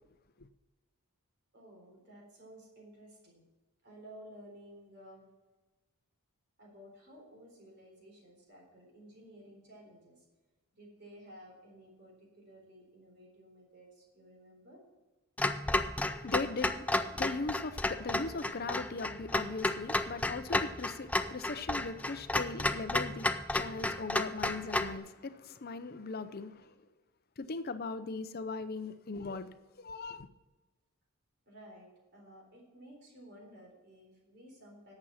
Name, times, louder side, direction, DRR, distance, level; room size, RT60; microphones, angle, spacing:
voice 1, 1.5-3.4 3.8-5.2 6.6-10.2 10.7-14.8 31.5-34.9, equal, 50° right, 3.9 m, -54 dB
Clock, 15.4-25.0, left 2 dB, 5° left, 0.3 m, -32 dB
voice 2, 16.1-26.7 27.4-30.3, left 3 dB, 45° left, 0.6 m, -39 dB
11.0 x 7.5 x 5.7 m
head